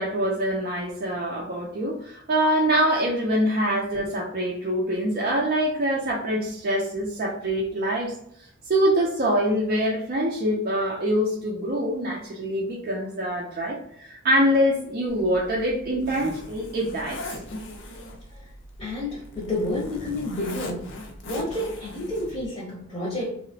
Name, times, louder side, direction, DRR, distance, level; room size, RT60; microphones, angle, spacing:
voice 1, 0.0-8.1 8.7-17.4, equal, 45° right, -3 dB, 0.4 m, -24 dB
Zipper (clothing), 15.1-22.5, left 2 dB, 60° left, 0.5 m, -40 dB
voice 2, 18.8-23.4, left 1 dB, 20° left, -5 dB, 0.7 m, -30 dB
2.9 x 2.1 x 2.6 m, 0.70 s
head